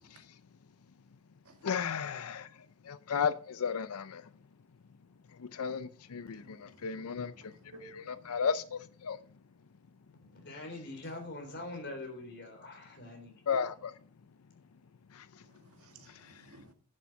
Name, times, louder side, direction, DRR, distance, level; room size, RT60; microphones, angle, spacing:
voice 1, 1.6-2.5 2.9-4.2 5.4-7.3 8.1-9.2 13.5-13.9, left 6 dB, 80° left, 0.5 m, -34 dB
voice 2, 6.3-7.9 8.2-8.3 15.4-16.7, right 2 dB, 75° right, 2.0 m, -57 dB
voice 3, 10.3-13.3, left 2 dB, 50° left, 3.6 m, -43 dB
10.5 x 7.3 x 4.6 m
head